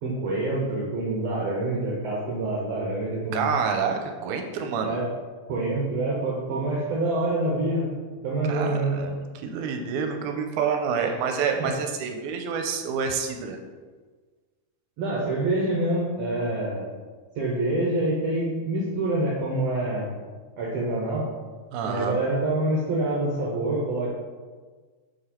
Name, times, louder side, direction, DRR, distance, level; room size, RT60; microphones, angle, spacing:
voice 1, 0.0-3.5 4.8-5.1 5.5-7.9 8.2-9.0 11.0-11.1 11.4-11.7 15.0-16.9 17.4-20.2 20.6-21.3 21.8-24.1, right 2 dB, 65° right, -5 dB, 2.0 m, -26 dB
voice 2, 3.3-5.0 8.5-9.1 9.4-13.6 21.7-22.1, right 6 dB, 90° right, 4 dB, 2.1 m, -28 dB
6.5 x 4.9 x 4.4 m, 1.4 s
omnidirectional pair, 3.5 m